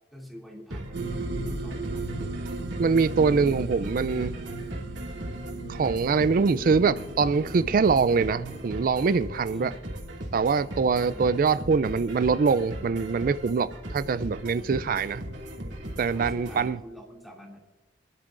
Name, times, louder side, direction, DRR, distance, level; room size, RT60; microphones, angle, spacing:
voice 1, 0.1-2.1 3.1-3.7 9.5-9.8 10.9-11.2 16.1-17.6, equal, ahead, 2.6 m, -46 dB
sound 1, 0.7-16.7, right 1 dB, 90° right, 2.7 m, -38 dB
sound 2, 0.9-8.6, right 2 dB, 65° right, 1.1 m, -36 dB
voice 2, 2.8-4.4 5.7-9.7 10.3-15.2 16.0-16.8, right 5 dB, 50° right, 0.3 m, -24 dB
24.0 x 11.0 x 2.5 m
head